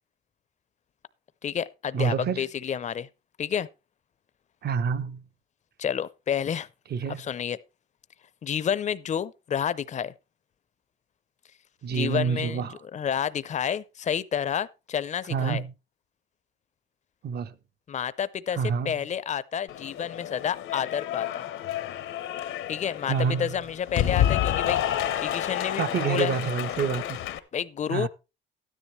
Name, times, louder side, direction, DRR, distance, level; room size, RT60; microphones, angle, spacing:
voice 1, 1.4-3.1 3.4-3.7 5.8-6.7 7.2-7.6 8.4-10.1 11.9-15.6 17.9-18.6 18.8-21.5 22.7-24.8 25.2-26.3 27.5-28.1, left 8 dB, 35° left, 0.5 m, -30 dB
voice 2, 1.9-2.5 4.6-5.2 6.9-7.2 11.8-12.8 15.3-15.7 17.2-17.5 18.5-18.9 23.1-23.5 25.8-27.2 27.9-28.1, right 6 dB, 55° right, 0.8 m, -27 dB
Cheering / Applause, 19.7-27.4, left 11 dB, 85° left, 0.9 m, -29 dB
12.5 x 10.0 x 3.2 m
cardioid pair, 90°, 20 cm